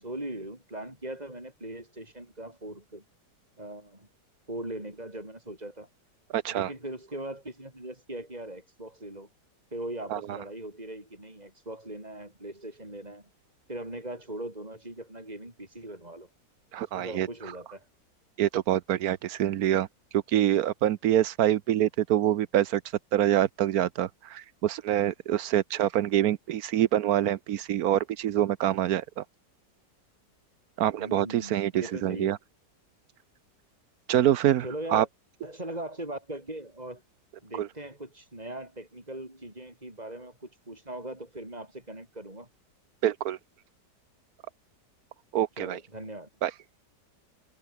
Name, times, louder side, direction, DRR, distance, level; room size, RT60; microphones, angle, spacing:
voice 1, 0.0-3.0 3.6-4.1 4.5-5.9 6.5-9.3 9.7-13.2 13.7-16.3 16.8-17.8 31.0-32.3 34.6-35.1 35.4-37.0 37.4-42.5 45.6-46.3, right 1 dB, 20° right, 7.8 m, -40 dB
voice 2, 6.3-6.7 10.1-10.2 16.7-17.3 18.4-19.9 20.1-22.8 23.1-29.2 30.8-32.4 34.1-34.6 34.9-35.0 37.5-37.7 43.0-43.4 45.3-45.8 46.4-46.5, right 11 dB, 65° right, 1.1 m, -25 dB
omnidirectional pair, 1.9 m